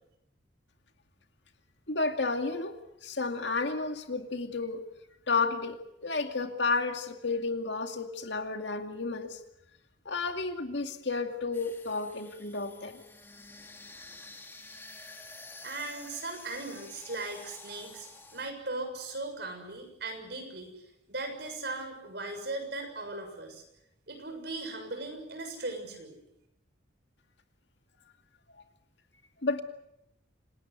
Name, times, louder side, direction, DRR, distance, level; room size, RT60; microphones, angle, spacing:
voice 1, 1.9-2.7 3.0-4.8 5.3-9.4 10.1-13.0 29.4-29.6, left 3 dB, 65° left, 6 dB, 2.3 m, -31 dB
sound 1, 11.5-18.5, left 3 dB, 10° left, 2.0 m, -49 dB
voice 2, 15.6-23.6 24.1-26.1, right 2 dB, 60° right, 5 dB, 6.8 m, -38 dB
27.5 x 18.5 x 8.1 m, 0.85 s
head